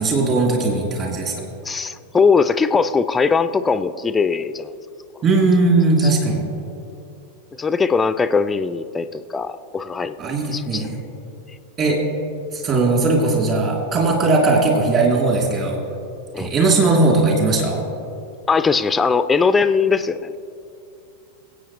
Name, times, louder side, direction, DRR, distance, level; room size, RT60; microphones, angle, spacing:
voice 1, 0.0-1.3 5.2-6.5 10.2-11.0 11.8-12.0 12.5-15.8 16.4-17.8, right 3 dB, 30° right, -1 dB, 2.8 m, -18 dB
voice 2, 1.6-4.7 6.0-6.1 7.6-10.1 10.5-10.8 16.3-16.5 18.5-20.5, left 5 dB, 15° left, 12 dB, 0.4 m, -20 dB
23.0 x 8.5 x 3.1 m, 2.6 s
figure-of-eight pair, 90°, 0 cm